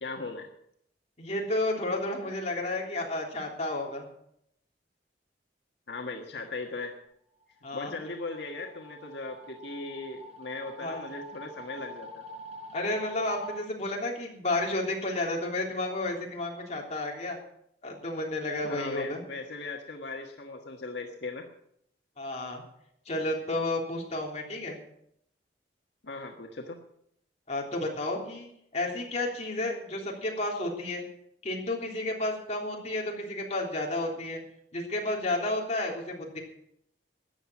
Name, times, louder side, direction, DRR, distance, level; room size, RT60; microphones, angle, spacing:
voice 1, 0.0-0.5 5.9-6.9 7.7-12.2 18.6-21.5 26.0-26.8, left 3 dB, 80° left, 2 dB, 1.5 m, -38 dB
voice 2, 1.2-4.1 7.6-7.9 10.8-11.1 12.7-17.4 17.8-19.2 22.2-22.6 23.0-24.8 27.5-31.0 31.4-34.4 34.7-36.4, left 2 dB, 40° left, -1 dB, 3.3 m, -31 dB
sound 1, 7.4-13.6, right 1 dB, 40° right, 4.3 m, -45 dB
13.5 x 9.4 x 7.3 m, 0.74 s
head